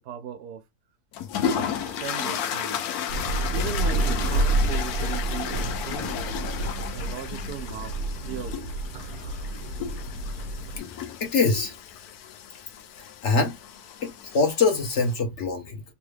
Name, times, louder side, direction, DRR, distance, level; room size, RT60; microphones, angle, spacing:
voice 1, 0.1-0.6 1.4-1.7 2.0-2.8 3.5-6.5 6.9-8.7, right 9 dB, 85° right, 1.2 m, -38 dB
sound 1, 1.1-15.1, left 8 dB, 75° left, 1.1 m, -34 dB
Thunder / Rain, 3.1-10.8, right 2 dB, 65° right, 1.1 m, -29 dB
voice 2, 11.2-11.7 13.2-13.5 14.0-15.8, left 4 dB, 55° left, 1.0 m, -23 dB
3.4 x 2.3 x 3.2 m
omnidirectional pair, 1.7 m